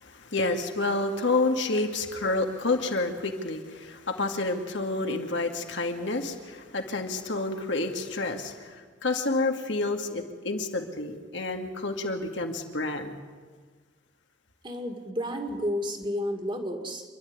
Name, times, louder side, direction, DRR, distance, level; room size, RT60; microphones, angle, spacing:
voice 1, 0.0-8.8 9.0-13.2, left 2 dB, 70° left, 4 dB, 2.2 m, -29 dB
voice 2, 14.6-17.0, equal, 25° right, 4 dB, 2.1 m, -32 dB
27.5 x 12.0 x 9.5 m, 1.5 s
head